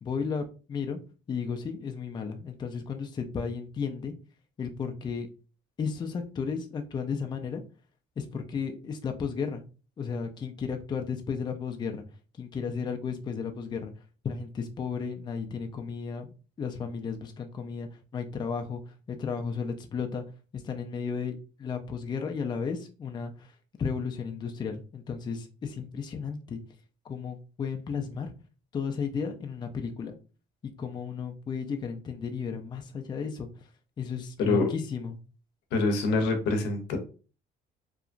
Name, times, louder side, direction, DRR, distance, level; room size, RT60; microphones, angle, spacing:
voice 1, 0.0-1.0 1.3-4.1 4.6-5.3 5.8-7.6 8.2-9.6 10.0-12.0 12.4-13.9 14.2-16.3 16.6-20.2 20.5-23.5 23.8-26.6 27.0-28.3 28.7-30.2 30.8-33.5 34.0-35.2, left 6 dB, 25° left, 5 dB, 0.4 m, -34 dB
voice 2, 35.7-37.0, left 3 dB, 85° left, 5 dB, 0.7 m, -25 dB
2.8 x 2.3 x 2.4 m, 0.35 s
cardioid pair, 110°, 17 cm